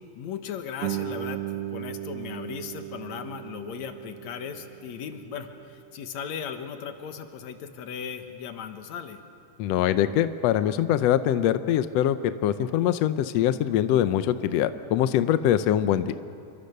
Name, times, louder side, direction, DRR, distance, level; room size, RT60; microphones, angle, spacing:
voice 1, 0.2-1.4 1.7-9.2, left 7 dB, 65° left, 7 dB, 2.3 m, -37 dB
Guitar, 0.8-6.2, right 13 dB, 75° right, 1.5 m, -37 dB
voice 2, 9.6-16.1, left 11 dB, 85° left, 12 dB, 1.4 m, -23 dB
28.0 x 24.0 x 6.7 m, 2.5 s
omnidirectional pair, 3.9 m